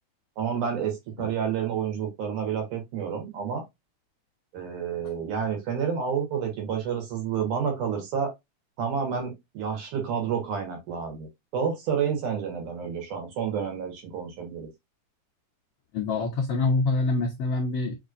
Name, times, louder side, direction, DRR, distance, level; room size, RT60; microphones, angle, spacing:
voice 1, 0.4-3.6 4.5-8.3 8.8-11.3 11.5-14.7, right 7 dB, 75° right, 2.9 m, -29 dB
voice 2, 15.9-18.0, left 3 dB, 85° left, 1.3 m, -25 dB
5.5 x 3.1 x 2.5 m
omnidirectional pair, 3.6 m